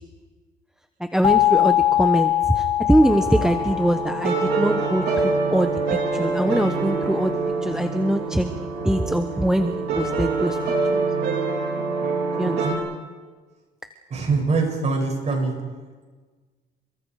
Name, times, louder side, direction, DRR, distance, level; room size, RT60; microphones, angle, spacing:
voice 1, 1.1-7.3 7.6-10.6 10.9-11.0 12.4-12.5, right 1 dB, 5° right, 7 dB, 1.1 m, -22 dB
sound 1, 1.2-6.0, left 12 dB, 35° left, 1.0 m, -23 dB
sound 2, 3.0-12.7, right 4 dB, 75° right, 4.9 m, -25 dB
voice 2, 12.5-12.8 14.1-15.6, right 4 dB, 40° right, 2 dB, 7.1 m, -24 dB
29.5 x 23.5 x 4.9 m, 1.4 s
cardioid pair, 110°, 17 cm